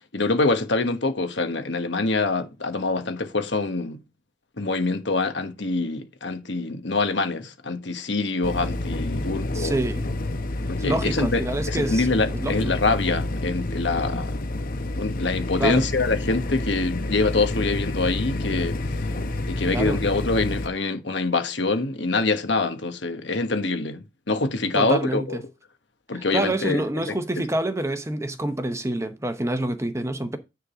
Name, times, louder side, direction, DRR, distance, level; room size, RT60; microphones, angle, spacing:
voice 1, 0.1-4.0 4.6-9.8 10.7-14.4 15.0-18.8 19.5-25.4 26.1-27.4, left 3 dB, 65° left, 1.2 m, -25 dB
sound 1, 8.4-20.7, left 2 dB, 45° left, 0.8 m, -29 dB
voice 2, 9.5-10.1 10.8-12.1 12.3-12.7 15.6-15.9 19.7-20.0 24.7-25.4 26.3-30.4, right 1 dB, 15° right, 0.7 m, -27 dB
10.0 x 3.8 x 5.0 m
head